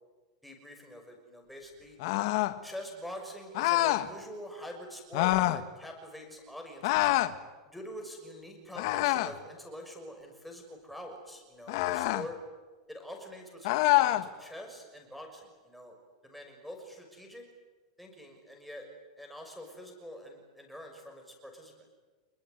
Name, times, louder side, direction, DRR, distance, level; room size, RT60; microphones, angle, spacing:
voice 1, 0.4-2.0 2.6-7.1 7.6-12.4 12.9-16.0 16.2-17.4 18.0-18.9 19.2-22.0, equal, ahead, 1 dB, 6.1 m, -45 dB
sound 1, 2.0-2.6 3.5-4.1 5.1-5.6 6.8-7.4 8.8-9.4 11.7-12.3 13.6-14.3, left 17 dB, 50° left, 1.5 m, -26 dB
27.0 x 21.5 x 9.6 m, 1.3 s
supercardioid pair, 160°, 3 cm